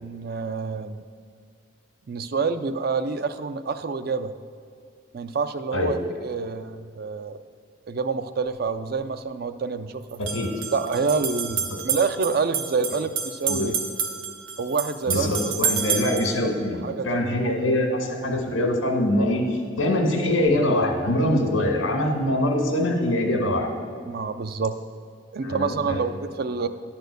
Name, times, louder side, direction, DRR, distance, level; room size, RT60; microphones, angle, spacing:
voice 1, 0.0-1.0 2.1-4.3 5.1-6.0 6.2-7.4 7.9-10.2 10.7-13.7 14.6-15.8 16.8-17.5 24.1-24.8 25.3-26.7, right 4 dB, 50° right, 11 dB, 0.4 m, -27 dB
sound 1, 8.5-8.6 10.1-16.4, right 7 dB, 80° right, 1.0 m, -29 dB
voice 2, 10.2-10.5 13.5-13.7 15.1-16.8 17.0-23.7 25.4-26.0, left 1 dB, 90° left, 2 dB, 1.8 m, -23 dB
11.5 x 4.4 x 8.0 m, 2.4 s
head